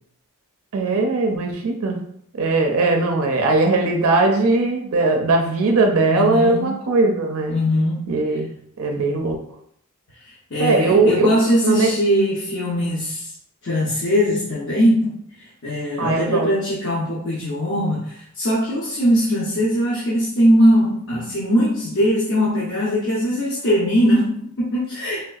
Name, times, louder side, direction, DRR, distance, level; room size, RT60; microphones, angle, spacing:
voice 1, 0.7-2.0 2.3-7.5 8.1-8.5 8.8-9.4 10.6-11.3 11.6-11.9 16.0-16.5, right 3 dB, 70° right, 3 dB, 0.5 m, -19 dB
voice 2, 6.1-6.7 7.5-8.1 10.2-13.3 13.6-15.2 15.6-25.2, equal, 55° left, -6 dB, 0.7 m, -20 dB
3.4 x 2.6 x 2.3 m, 0.66 s
head